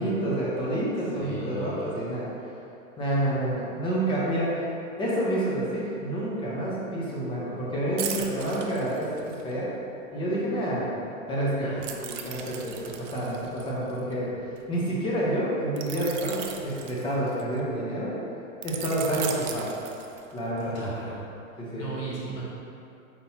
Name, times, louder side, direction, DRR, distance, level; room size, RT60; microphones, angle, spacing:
voice 1, 0.0-2.3 3.0-4.7 5.0-9.7 10.1-10.9 11.3-11.7 12.0-14.3 14.7-18.1 18.6-19.7 20.3-20.7 21.6-21.9, right 1 dB, 15° left, -6 dB, 0.6 m, -28 dB
voice 2, 1.2-1.9 11.6-12.0 20.7-21.2 21.8-22.4, right 3 dB, 45° left, -6 dB, 1.4 m, -36 dB
sound 1, 8.0-9.5 11.8-14.6 15.8-17.6 18.6-20.5 20.9-21.1, right 8 dB, 60° right, 0.5 m, -37 dB
4.4 x 3.8 x 2.7 m, 2.8 s
hypercardioid pair, 135°, 41 cm